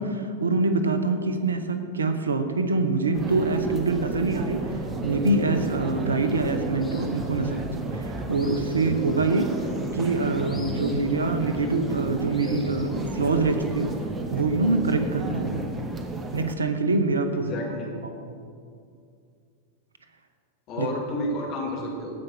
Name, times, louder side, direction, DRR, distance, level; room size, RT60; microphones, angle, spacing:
voice 1, 0.0-9.5 9.9-14.0 14.3-15.7 16.3-17.5 18.3-18.4 20.8-20.9, right 3 dB, 75° right, 8 dB, 0.9 m, -25 dB
sound 1, 3.1-16.5, right 2 dB, 20° right, 1.0 m, -33 dB
sound 2, 6.8-14.1, left 2 dB, 10° left, 1.5 m, -49 dB
voice 2, 17.4-18.0 20.7-22.1, left 1 dB, 40° left, -2 dB, 2.8 m, -31 dB
15.5 x 5.2 x 6.0 m, 2.4 s
figure-of-eight pair, 90°, 0 cm